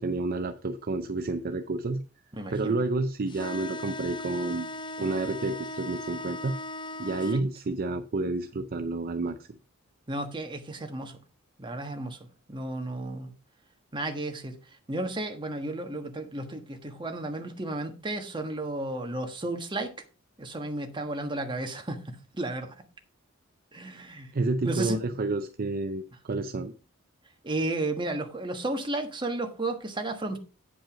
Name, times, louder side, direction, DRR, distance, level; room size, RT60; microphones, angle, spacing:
voice 1, 0.0-2.0 2.5-4.7 5.0-6.5 7.0-9.6 24.3-26.7, right 3 dB, 45° right, 0.5 m, -30 dB
voice 2, 2.4-2.8 10.1-11.2 11.6-12.2 12.5-13.3 13.9-14.6 14.9-19.9 20.4-22.7 23.7-24.3 24.6-25.0 27.4-30.4, right 2 dB, 25° right, 1.3 m, -33 dB
sound 1, 3.3-7.4, left 1 dB, 20° left, 0.7 m, -38 dB
9.0 x 5.3 x 5.0 m
head